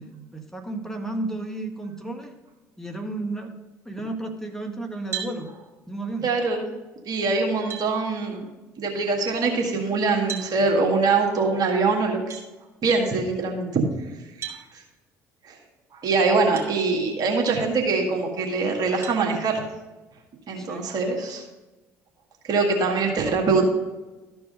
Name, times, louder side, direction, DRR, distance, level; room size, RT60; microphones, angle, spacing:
voice 1, 0.0-2.3 2.8-3.5 3.8-5.5 5.9-6.2 20.6-20.9 22.7-23.0, right 2 dB, 5° left, 3 dB, 1.6 m, -33 dB
sound 1, 5.1-5.4 7.0-7.1 7.7-7.9 10.3-10.5 12.3-12.5 14.4-14.6 16.5-16.7 17.3-17.4 19.0-19.2, right 9 dB, 30° right, 2.3 m, -34 dB
voice 2, 6.2-6.6 7.1-8.4 8.8-12.4 12.8-13.9 14.4-14.6 15.4-15.6 15.9-19.6 20.5-21.4 22.4-23.6, right 4 dB, 50° right, 1 dB, 1.9 m, -23 dB
13.0 x 4.7 x 5.2 m, 1.1 s
hypercardioid pair, 55°, 8 cm